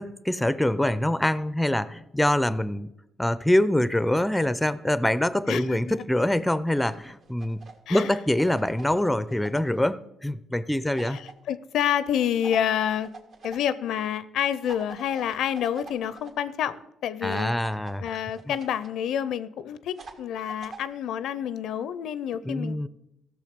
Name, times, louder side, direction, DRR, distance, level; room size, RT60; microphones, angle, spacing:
voice 1, 0.0-2.9 3.2-7.6 7.9-11.2 17.2-18.2 18.5-18.6 22.4-22.9, left 1 dB, 5° left, 0.4 m, -25 dB
voice 2, 5.5-6.0 7.9-8.1 11.1-11.2 11.5-13.1 13.4-17.5 18.0-22.9, left 9 dB, 80° left, 0.5 m, -28 dB
sound 1, 6.7-9.8 11.0-11.3 12.4-13.6 14.6-16.3 17.3-18.9 20.0-20.9, right 4 dB, 60° right, 1.5 m, -45 dB
15.5 x 6.4 x 5.1 m
cardioid pair, 90°, 0 cm